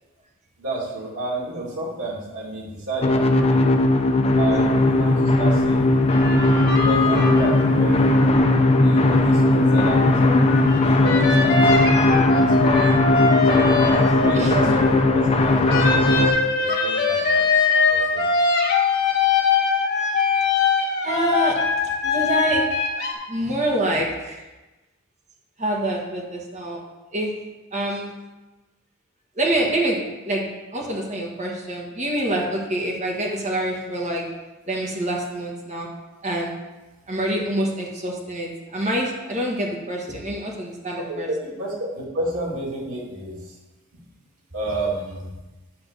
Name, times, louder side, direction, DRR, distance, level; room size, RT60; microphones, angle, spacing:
voice 1, 0.6-3.7 4.4-6.1 6.7-12.8 13.4-18.3 41.1-43.6 43.9-44.0 44.5-45.3, right 2 dB, 85° right, -4 dB, 2.4 m, -31 dB
sound 1, 3.0-16.3, left 2 dB, 30° left, 0.5 m, -18 dB
sound 2, 6.1-9.1 9.4-15.3 15.7-23.1, left 4 dB, 50° left, 1.4 m, -22 dB
voice 2, 14.3-14.7 21.0-21.6 22.0-22.7 23.3-24.4 25.6-26.8 27.1-27.3 27.7-28.1 29.4-30.5 30.7-34.2 34.7-35.9 36.2-36.5 37.1-41.3, right 1 dB, 35° right, -1 dB, 1.3 m, -26 dB
8.4 x 3.5 x 6.7 m, 1.1 s
head